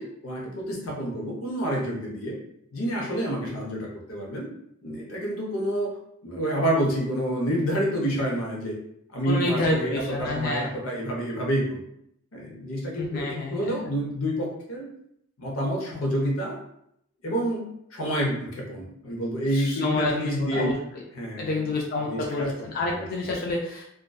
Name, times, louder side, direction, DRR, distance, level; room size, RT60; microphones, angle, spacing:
voice 1, 0.0-2.4 2.7-4.5 4.8-6.0 6.2-8.8 9.1-11.8 12.3-14.9 15.4-16.6 17.2-20.7 21.1-22.5 22.9-23.0, equal, 90° left, -2 dB, 0.7 m, -28 dB
voice 2, 9.3-10.7 12.9-13.7 19.5-20.7 21.4-23.8, left 2 dB, 45° left, -1 dB, 0.3 m, -28 dB
2.5 x 2.2 x 2.2 m, 0.74 s
head